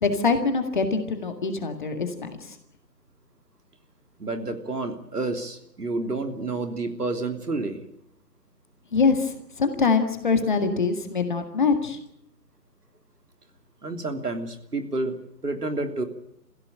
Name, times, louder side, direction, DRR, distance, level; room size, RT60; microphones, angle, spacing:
voice 1, 0.0-2.3 8.9-12.0, left 4 dB, 30° left, 7 dB, 1.9 m, -24 dB
voice 2, 4.2-7.8 13.8-15.2 15.4-16.0, right 2 dB, 70° right, 6 dB, 3.3 m, -29 dB
24.0 x 16.0 x 8.8 m, 0.77 s
figure-of-eight pair, 155°, 49 cm